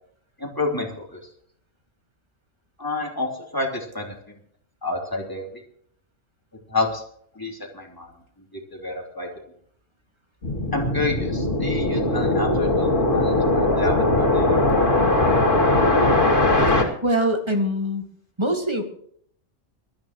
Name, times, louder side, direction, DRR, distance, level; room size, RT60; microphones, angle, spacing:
voice 1, 0.4-1.2 2.8-4.1 4.8-5.6 6.7-7.0 7.3-8.1 8.5-9.3 10.7-15.1, left 2 dB, 15° left, 0 dB, 3.1 m, -29 dB
sound 1, 10.4-16.8, left 2 dB, 75° left, 2.9 m, -20 dB
voice 2, 17.0-18.1 18.4-18.8, equal, 20° right, 4 dB, 2.0 m, -23 dB
22.0 x 13.0 x 3.0 m, 0.64 s
omnidirectional pair, 1.3 m